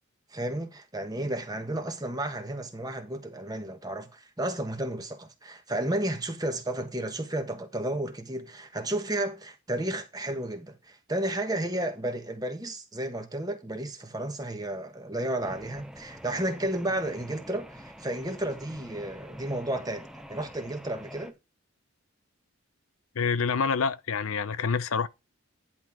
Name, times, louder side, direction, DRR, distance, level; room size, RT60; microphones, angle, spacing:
voice 1, 0.3-21.3, right 1 dB, 20° right, 1.3 m, -32 dB
sound 1, 15.4-21.3, equal, 5° right, 0.7 m, -46 dB
voice 2, 23.2-25.1, left 5 dB, 90° left, 0.6 m, -27 dB
10.5 x 3.9 x 5.9 m
head